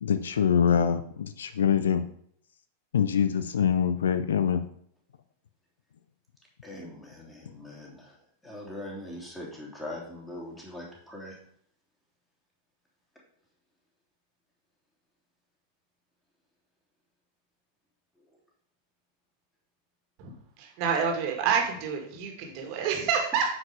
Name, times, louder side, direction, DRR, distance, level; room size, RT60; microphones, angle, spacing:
voice 1, 0.0-2.0 2.9-4.6, left 8 dB, 65° left, 12 dB, 0.5 m, -24 dB
voice 2, 6.6-8.2 8.4-11.4, left 1 dB, 10° left, -3 dB, 3.1 m, -41 dB
voice 3, 20.2-23.5, right 7 dB, 45° right, 2 dB, 2.0 m, -28 dB
9.4 x 4.9 x 5.0 m, 0.64 s
figure-of-eight pair, 90°, 0 cm